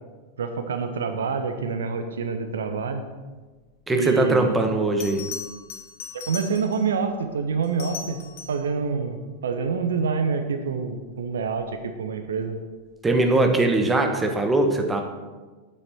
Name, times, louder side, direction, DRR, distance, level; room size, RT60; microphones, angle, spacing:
voice 1, 0.4-3.0 3.9-4.6 6.1-8.2 8.5-12.6, right 5 dB, 65° right, 7 dB, 0.8 m, -27 dB
voice 2, 3.9-5.3 13.0-15.0, right 2 dB, 15° right, 4 dB, 1.3 m, -21 dB
Bell, 5.0-6.9 7.6-8.7 11.4-11.6, left 6 dB, 55° left, 1.5 m, -38 dB
10.0 x 8.9 x 4.3 m, 1.3 s
figure-of-eight pair, 90°, 0 cm